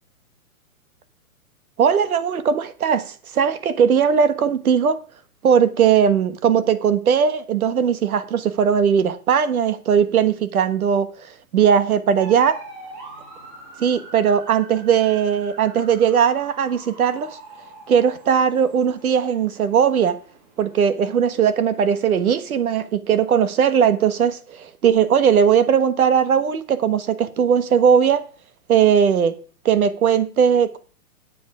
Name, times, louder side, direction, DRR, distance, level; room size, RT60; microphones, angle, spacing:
voice 1, 1.8-5.0 5.4-12.5 13.8-17.3 17.9-20.2 20.6-28.2 28.7-29.3 29.6-30.8, right 7 dB, 75° right, 1.4 m, -18 dB
sound 1, 12.2-22.9, right 3 dB, 30° right, 3.6 m, -44 dB
9.9 x 8.5 x 4.9 m
hypercardioid pair, 170°, 44 cm